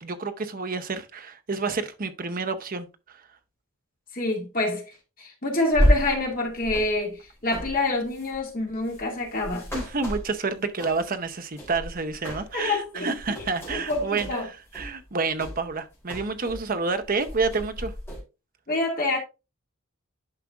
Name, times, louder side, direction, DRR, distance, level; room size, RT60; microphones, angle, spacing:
voice 1, 0.0-3.3 9.7-17.9, right 4 dB, 40° right, 0.7 m, -29 dB
voice 2, 4.1-4.9 5.2-9.7 12.5-13.4 13.7-14.5 18.7-19.2, left 2 dB, 40° left, 2.2 m, -27 dB
sound 1, 5.7-11.2 11.6-12.7 13.0-16.7 17.0-18.2, equal, 10° left, 3.1 m, -30 dB
10.5 x 4.8 x 2.4 m
head